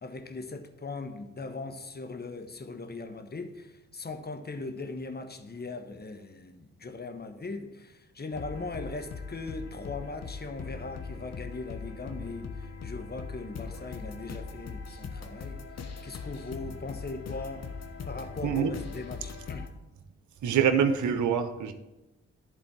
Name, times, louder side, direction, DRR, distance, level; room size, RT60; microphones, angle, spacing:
voice 1, 0.0-15.6 16.0-17.7 18.0-19.7, left 3 dB, 30° left, 1.2 m, -39 dB
sound 1, 8.3-19.7, left 4 dB, 60° left, 1.1 m, -40 dB
voice 2, 20.4-21.7, right 7 dB, 75° right, 1.0 m, -25 dB
11.0 x 4.1 x 7.5 m
supercardioid pair, 50°, 30 cm